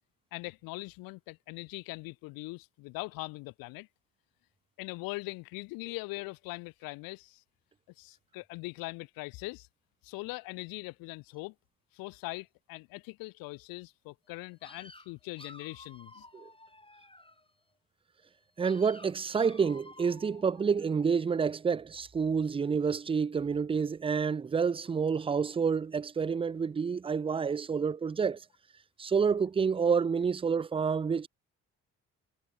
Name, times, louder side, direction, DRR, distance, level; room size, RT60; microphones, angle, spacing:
voice 1, 0.3-3.9 4.8-7.4 8.0-9.7 10.0-11.5 11.9-16.3, left 24 dB, 70° left, 0.5 m, -41 dB
sound 1, 14.6-17.5 18.6-21.1, left 2 dB, 15° left, 5.4 m, -53 dB
voice 2, 18.6-28.4 29.0-31.3, right 6 dB, 15° right, 0.4 m, -28 dB
hypercardioid pair, 45°, 37 cm